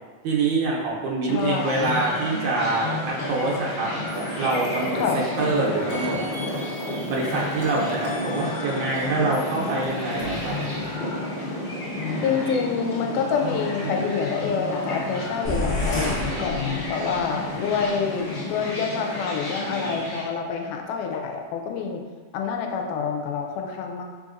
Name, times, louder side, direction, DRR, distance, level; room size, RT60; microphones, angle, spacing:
voice 1, 0.2-3.9 4.4-5.0 5.4-6.2 7.0-10.6 13.8-14.0, right 3 dB, 75° right, -4 dB, 2.0 m, -25 dB
voice 2, 1.2-2.0 5.0-5.2 12.2-22.0 22.3-24.0, left 6 dB, 90° left, 2 dB, 2.1 m, -27 dB
sound 1, 1.3-20.3, left 1 dB, 55° left, 1.3 m, -31 dB
sound 2, 4.1-5.5 5.9-10.9, equal, 75° left, 1.6 m, -39 dB
sound 3, 15.4-17.3, left 1 dB, 35° left, 0.9 m, -28 dB
4.9 x 3.9 x 2.5 m, 1.4 s
omnidirectional pair, 3.5 m